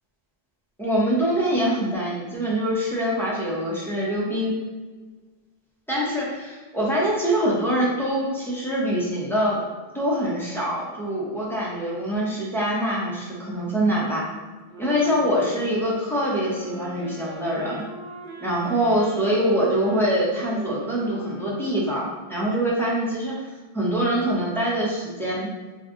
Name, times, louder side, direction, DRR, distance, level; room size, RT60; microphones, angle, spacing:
voice 1, 0.8-4.6 5.9-9.6 9.9-14.2 14.8-17.8 18.4-25.5, equal, 5° left, -7 dB, 0.5 m, -24 dB
sound 1, 14.7-22.4, right 1 dB, 80° right, 0.9 m, -39 dB
2.6 x 2.4 x 3.6 m, 1.3 s
omnidirectional pair, 1.1 m